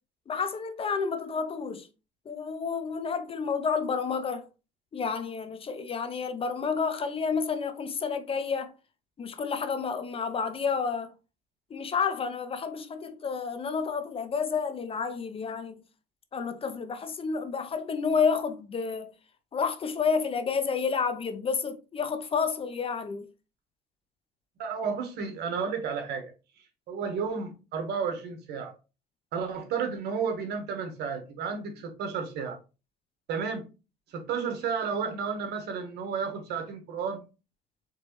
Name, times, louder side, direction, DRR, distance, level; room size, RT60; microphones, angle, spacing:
voice 1, 0.3-1.9 2.3-4.5 4.9-8.7 9.2-11.1 11.7-15.8 16.3-19.1 19.5-23.3, left 5 dB, 35° left, 0.6 m, -30 dB
voice 2, 24.6-26.3 26.9-28.7 29.3-32.6 33.3-33.6 34.1-37.2, right 6 dB, 75° right, 1.4 m, -32 dB
4.5 x 3.1 x 3.0 m
cardioid pair, 110°, 17 cm